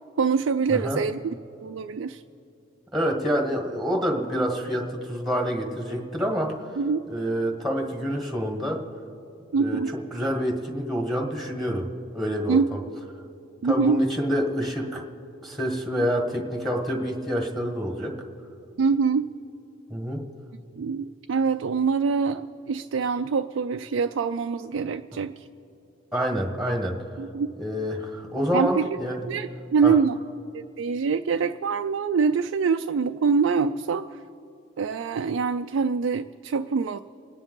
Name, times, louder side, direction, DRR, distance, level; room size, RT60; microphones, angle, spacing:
voice 1, 0.2-1.3 1.6-2.2 6.8-7.0 9.5-9.9 12.5-12.7 13.6-14.0 18.8-19.3 20.8-25.3 27.2-27.5 28.5-28.9 29.3-30.2 30.5-34.0 34.8-37.0, right 5 dB, 85° right, 7 dB, 0.4 m, -24 dB
voice 2, 0.7-1.0 2.9-6.6 7.1-8.8 9.5-11.9 12.1-12.8 13.6-15.0 15.4-18.1 19.9-20.2 25.1-25.2 26.1-27.0 27.6-29.3 29.8-29.9, equal, ahead, 2 dB, 1.4 m, -27 dB
28.0 x 9.9 x 3.8 m, 2.8 s
head